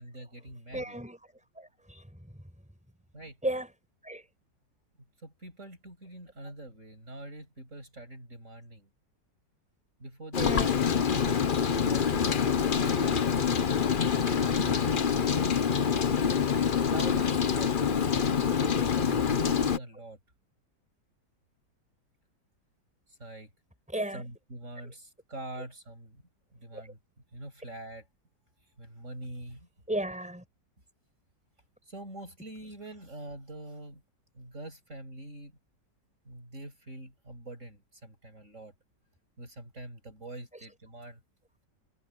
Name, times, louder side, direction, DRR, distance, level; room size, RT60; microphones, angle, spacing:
voice 1, 0.0-1.0 3.1-3.4 5.2-8.9 10.0-10.6 10.9-14.0 14.3-15.2 16.8-17.8 18.0-20.2 23.1-23.5 24.1-26.2 26.5-27.0 27.3-28.0 28.8-29.7 31.9-34.0 34.3-35.6 36.3-38.7 39.4-41.2, right 1 dB, 45° right, 7.4 m, -45 dB
voice 2, 0.7-2.3 3.4-3.7 4.0-4.3 10.3-10.7 18.8-18.9 23.9-24.2 26.7-26.9 29.9-30.4, right 1 dB, 5° right, 6.1 m, -35 dB
Rain, 10.3-19.8, left 7 dB, 40° left, 0.8 m, -26 dB
omnidirectional pair, 1.9 m